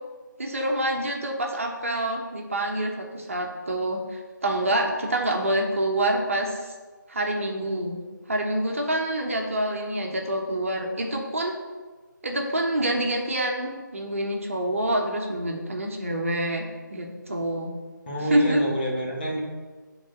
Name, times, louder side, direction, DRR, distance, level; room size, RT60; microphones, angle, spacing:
voice 1, 0.4-6.7 7.1-8.0 8.3-11.5 12.2-17.7 18.2-18.6, right 1 dB, 40° right, 2 dB, 1.2 m, -27 dB
voice 2, 18.1-19.4, right 1 dB, 30° left, -4 dB, 1.8 m, -27 dB
8.1 x 4.1 x 7.0 m, 1.4 s
figure-of-eight pair, 160°, 11 cm